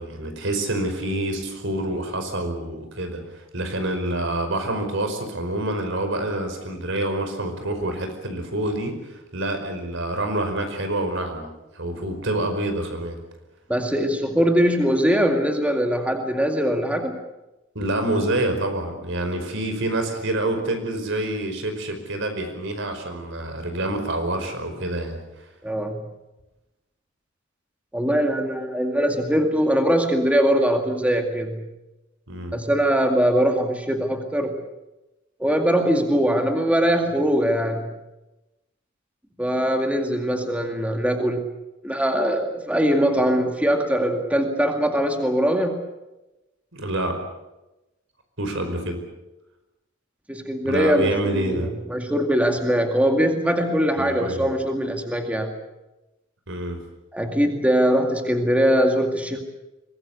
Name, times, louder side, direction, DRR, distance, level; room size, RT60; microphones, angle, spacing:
voice 1, 0.0-3.2 3.5-9.0 9.3-11.5 11.7-13.2 17.7-25.2 32.3-32.5 46.7-47.2 48.4-49.0 50.6-51.7 54.0-54.5 56.5-56.8, right 1 dB, 65° right, 6 dB, 5.1 m, -27 dB
voice 2, 13.7-17.2 25.6-26.0 27.9-31.7 32.5-34.5 35.4-37.9 39.4-41.4 41.8-45.8 50.3-55.5 57.1-59.4, equal, 5° right, 4 dB, 2.2 m, -21 dB
23.5 x 20.5 x 8.2 m, 0.99 s
head